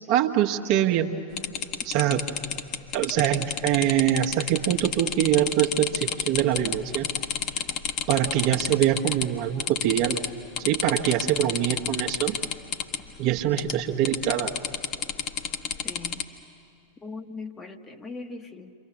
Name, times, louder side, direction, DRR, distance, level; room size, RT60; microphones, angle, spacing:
voice 1, 0.1-1.1 1.8-2.3 2.9-7.1 8.1-10.2 10.6-12.4 13.2-14.5, right 11 dB, 45° right, 3 dB, 1.3 m, -24 dB
sound 1, 1.4-9.3 9.6-10.3 10.6-13.0 13.6-13.8 14.1-16.2, left 7 dB, 40° left, 1.4 m, -30 dB
voice 2, 15.8-16.2 17.0-18.7, left 3 dB, 15° left, 6 dB, 1.2 m, -39 dB
29.0 x 25.0 x 7.2 m, 2.5 s
figure-of-eight pair, 90°, 0 cm